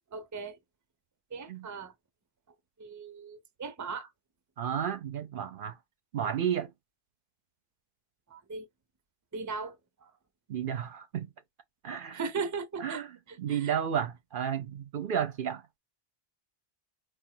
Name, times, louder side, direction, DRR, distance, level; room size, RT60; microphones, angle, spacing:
voice 1, 0.1-0.6 1.3-1.9 2.8-4.1 8.3-8.7 9.3-10.1 12.1-13.0 13.3-13.7, right 4 dB, 20° right, 0.5 m, -38 dB
voice 2, 4.6-5.8 6.1-6.7 10.5-11.3 11.8-12.2 12.8-13.1 13.4-15.6, right 8 dB, 60° right, 0.7 m, -32 dB
4.7 x 2.3 x 4.3 m
omnidirectional pair, 1.1 m